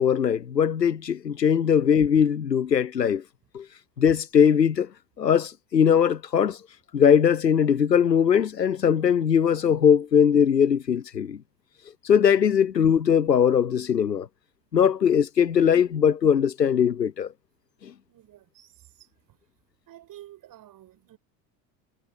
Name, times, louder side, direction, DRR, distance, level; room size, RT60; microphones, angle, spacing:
voice 1, 0.0-3.2 3.5-3.6 4.0-4.9 5.2-6.6 6.9-11.4 12.0-14.3 14.7-17.3, left 8 dB, 85° left, 0.8 m, -20 dB
voice 2, 18.0-19.4 19.9-21.2, right 13 dB, 40° right, 7.7 m, -50 dB
figure-of-eight pair, 70°, 48 cm